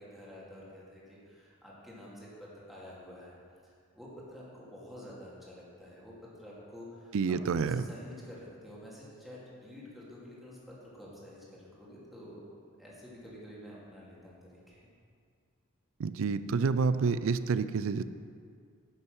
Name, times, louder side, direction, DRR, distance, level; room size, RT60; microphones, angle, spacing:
voice 1, 0.0-3.4 3.6-14.4 14.7-14.9, left 1 dB, ahead, -7 dB, 2.4 m, -49 dB
voice 2, 7.1-7.8 16.0-18.0, right 5 dB, 65° right, 13 dB, 0.4 m, -28 dB
10.0 x 6.4 x 6.1 m, 2.2 s
head